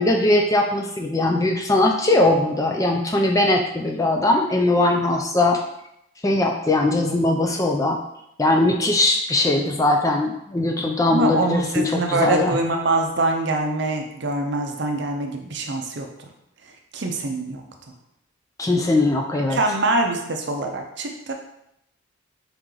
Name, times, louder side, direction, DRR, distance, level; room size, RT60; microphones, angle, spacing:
voice 1, 0.0-5.6 6.2-8.0 8.4-12.6 18.6-19.6, left 2 dB, 15° left, 2 dB, 0.3 m, -20 dB
voice 2, 11.1-16.3 16.9-17.6 19.5-21.3, right 2 dB, 55° right, 3 dB, 0.6 m, -24 dB
3.9 x 3.0 x 3.7 m, 0.79 s
head